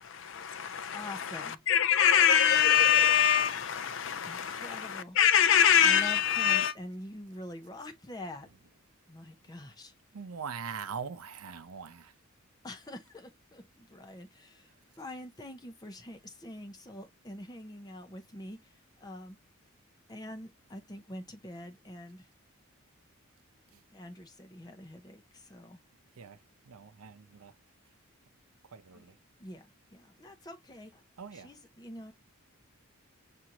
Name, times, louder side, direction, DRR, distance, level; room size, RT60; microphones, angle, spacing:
voice 1, 0.2-6.7, left 9 dB, 60° left, 0.5 m, -24 dB
voice 2, 0.9-1.6 4.2-5.2 5.8-8.5 9.1-9.9 12.6-19.4 20.1-22.3 23.9-25.8 28.9-29.1 29.4-31.0 31.3-32.1, left 1 dB, 20° left, 0.7 m, -45 dB
voice 3, 10.1-12.1 23.7-23.8 26.2-27.5 28.6-29.2 31.2-31.5, right 6 dB, 85° right, 0.6 m, -42 dB
6.1 x 2.6 x 2.8 m
head